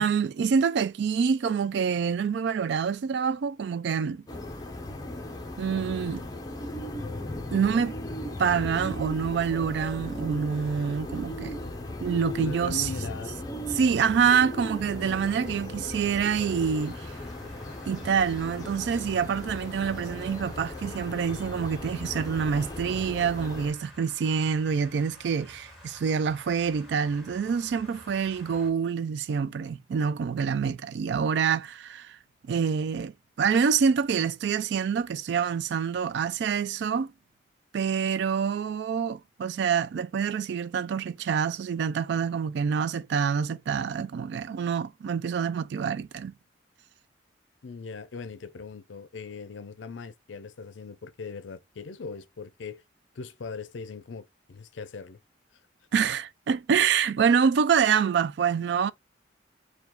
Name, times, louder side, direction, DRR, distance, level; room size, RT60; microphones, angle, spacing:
voice 1, 0.0-4.2 5.6-6.2 7.5-8.0 8.4-11.6 12.0-12.9 13.7-17.0 17.9-32.2 32.4-33.1 33.4-37.1 37.7-46.3 55.9-58.9, right 6 dB, 60° right, 0.3 m, -26 dB
sound 1, 4.3-23.7, left 1 dB, 20° left, 0.6 m, -37 dB
voice 2, 12.4-13.4 14.9-15.4 47.6-52.8 53.2-55.2, left 4 dB, 75° left, 0.5 m, -40 dB
sound 2, 16.4-28.7, left 1 dB, ahead, 1.9 m, -51 dB
4.6 x 2.3 x 3.6 m
head